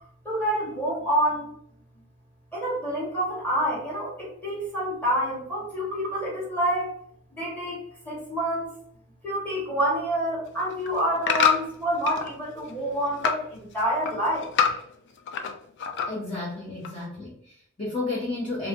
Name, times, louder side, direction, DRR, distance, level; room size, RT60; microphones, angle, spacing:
voice 1, 0.2-1.5 2.5-6.9 7.3-8.7 9.2-14.5, right 1 dB, 10° left, -6 dB, 1.4 m, -27 dB
sound 1, 10.5-12.3 12.7-13.5 13.8-15.5 15.8-16.4 16.8-16.9, left 6 dB, 50° left, 0.4 m, -26 dB
voice 2, 16.1-18.7, left 2 dB, 25° left, -6 dB, 0.8 m, -32 dB
3.3 x 3.0 x 2.5 m, 0.66 s
head